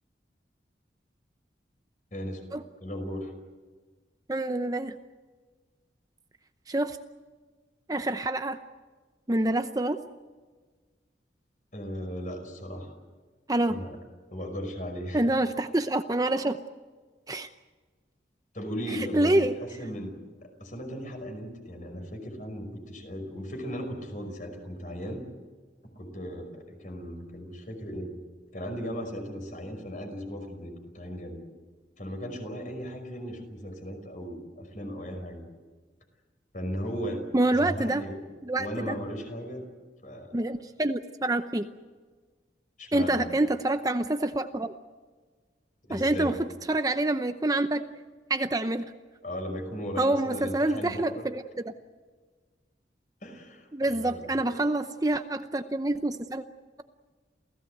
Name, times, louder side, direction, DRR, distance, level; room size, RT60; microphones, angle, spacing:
voice 1, 2.1-2.4 2.8-3.3 11.7-12.9 13.7-14.0 14.3-15.2 18.5-19.5 19.8-20.1 20.4-25.3 26.0-28.1 28.5-31.4 32.0-35.4 36.5-37.2 37.5-38.2 38.6-39.7 40.0-40.4 42.8-43.3 45.8-46.3 49.2-51.2 53.2-54.5, equal, 45° left, 6 dB, 5.5 m, -37 dB
voice 2, 4.3-5.0 6.7-7.0 7.9-8.6 9.3-10.0 13.5-13.8 15.1-16.6 17.3-17.5 18.9-19.5 37.3-38.0 38.4-39.0 40.3-41.7 42.9-44.7 45.9-47.8 48.3-48.8 50.0-51.7 53.7-56.4, right 2 dB, 20° right, 9 dB, 0.7 m, -27 dB
28.5 x 17.0 x 8.0 m, 1.4 s
head